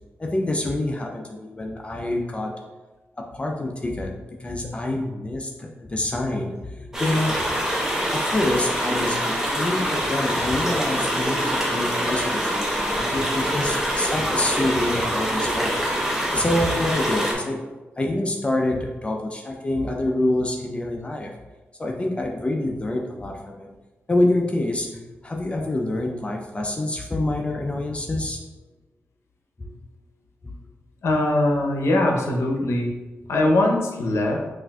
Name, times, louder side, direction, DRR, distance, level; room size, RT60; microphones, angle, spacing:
voice 1, 0.2-2.6 3.3-7.7 8.1-15.8 16.3-17.6 18.0-21.3 21.8-23.7 24.1-28.5 29.6-29.8 30.4-30.5, left 1 dB, 25° left, 1 dB, 0.4 m, -26 dB
sound 1, 6.9-17.3, equal, 10° right, 0.8 m, -25 dB
voice 2, 31.0-32.9 33.3-34.4, left 1 dB, 90° left, 1 dB, 0.6 m, -21 dB
5.8 x 2.5 x 2.2 m, 1.2 s
wide cardioid pair, 105°, 5 cm